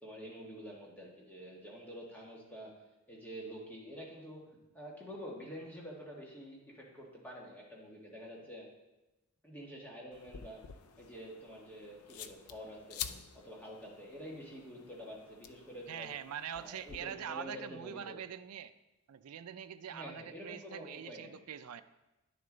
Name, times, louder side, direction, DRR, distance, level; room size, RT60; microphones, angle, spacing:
voice 1, 0.0-2.7 3.1-4.5 4.7-8.7 9.4-10.6 11.0-13.0 13.3-16.1 16.5-18.2 19.9-21.4, equal, 5° left, -3 dB, 1.5 m, -48 dB
sound 1, 10.1-17.0, left 8 dB, 85° left, 0.5 m, -49 dB
voice 2, 15.9-18.7 19.1-21.8, right 8 dB, 85° right, 11 dB, 0.4 m, -43 dB
10.0 x 6.7 x 3.9 m, 1.0 s
head